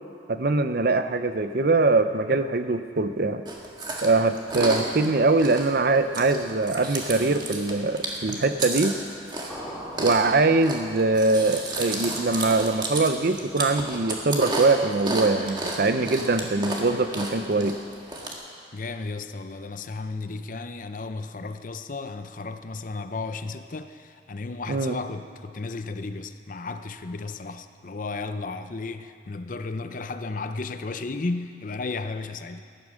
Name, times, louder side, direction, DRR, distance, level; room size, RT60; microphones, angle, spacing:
voice 1, 0.3-3.4 4.0-8.9 10.0-17.8 24.7-25.0, right 3 dB, 55° right, 0.6 m, -22 dB
Chewing mastication, 3.4-18.3, right 2 dB, 25° right, 1.6 m, -33 dB
sound 1, 9.5-11.2, equal, 5° right, 2.7 m, -40 dB
voice 2, 18.7-32.6, left 3 dB, 45° left, 0.6 m, -34 dB
15.5 x 11.0 x 6.4 m
head